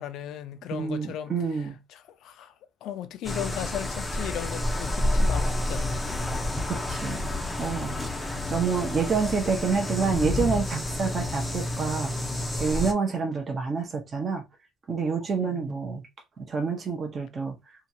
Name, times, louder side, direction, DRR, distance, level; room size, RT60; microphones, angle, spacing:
voice 1, 0.0-2.5 2.8-6.1 15.4-15.8, left 11 dB, 65° left, 0.4 m, -37 dB
voice 2, 0.7-1.8 6.7-7.3 7.6-12.1 12.6-14.5 14.9-16.1 16.4-17.6, right 5 dB, 30° right, 0.7 m, -28 dB
sound 1, 3.2-12.9, left 1 dB, 10° left, 0.6 m, -29 dB
2.8 x 2.3 x 2.7 m
cardioid pair, 125°, 0 cm